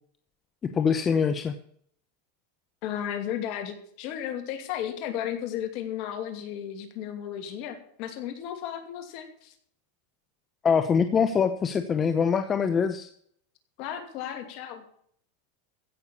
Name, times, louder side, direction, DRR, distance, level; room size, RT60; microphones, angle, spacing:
voice 1, 0.7-1.5 10.6-13.1, left 6 dB, 25° left, 9 dB, 0.8 m, -24 dB
voice 2, 2.8-9.5 13.8-14.8, left 10 dB, 50° left, 6 dB, 2.7 m, -34 dB
15.5 x 6.7 x 7.1 m, 0.64 s
supercardioid pair, 130°, 0 cm